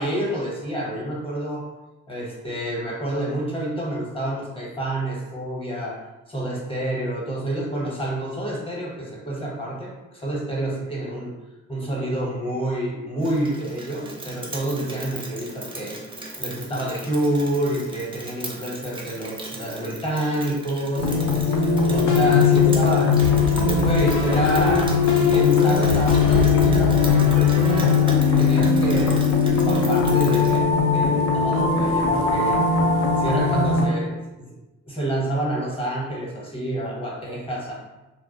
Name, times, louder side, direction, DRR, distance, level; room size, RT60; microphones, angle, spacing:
voice 1, 0.0-1.6 2.1-6.0 6.3-11.3 11.7-21.3 21.9-23.3 23.6-24.8 25.2-32.6 33.2-34.5 34.8-37.7, right 1 dB, 20° left, -4 dB, 0.8 m, -28 dB
Rain, 13.2-30.6, right 2 dB, 15° right, 0.5 m, -38 dB
sound 1, 21.0-33.9, left 5 dB, 70° left, 0.6 m, -19 dB
sound 2, 23.2-29.1, right 3 dB, 70° right, 0.5 m, -30 dB
2.3 x 2.1 x 2.7 m, 1.1 s
cardioid pair, 90°, 30 cm